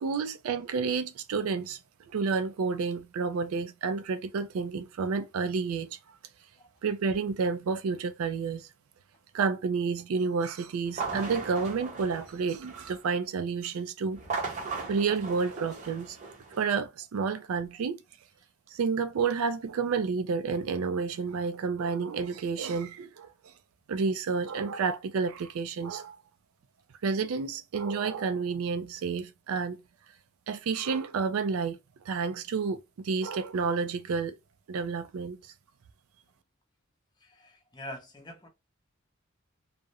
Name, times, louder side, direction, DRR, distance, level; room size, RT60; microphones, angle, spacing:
voice 1, 0.0-1.8 2.1-6.0 6.8-8.7 9.3-14.2 14.9-16.2 16.6-18.0 18.7-23.3 23.9-26.2 27.0-29.8 30.5-31.8 32.1-34.4 34.7-35.4, right 5 dB, 80° right, 0.4 m, -30 dB
sound 1, 10.9-13.1 14.1-16.6, right 4 dB, 35° right, 0.7 m, -37 dB
voice 2, 37.2-38.5, left 1 dB, 20° left, 0.6 m, -44 dB
2.4 x 2.0 x 2.8 m
head